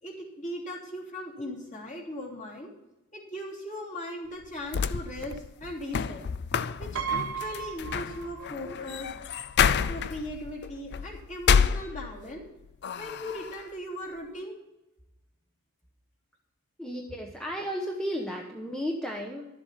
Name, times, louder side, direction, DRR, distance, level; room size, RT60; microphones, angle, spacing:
voice 1, 0.0-2.7 3.1-6.2 6.8-9.1 9.9-12.5 12.9-14.6, left 1 dB, 35° left, -3 dB, 3.1 m, -38 dB
sound 1, 4.4-12.4 12.8-13.6, left 7 dB, 50° left, 0.4 m, -29 dB
Piano, 7.0-8.8 9.1-9.2 10.4-10.5 10.7-11.0, right 7 dB, 65° right, 1.2 m, -35 dB
voice 2, 16.8-19.5, equal, 5° left, 0 dB, 1.0 m, -34 dB
12.5 x 7.8 x 5.7 m, 0.95 s
head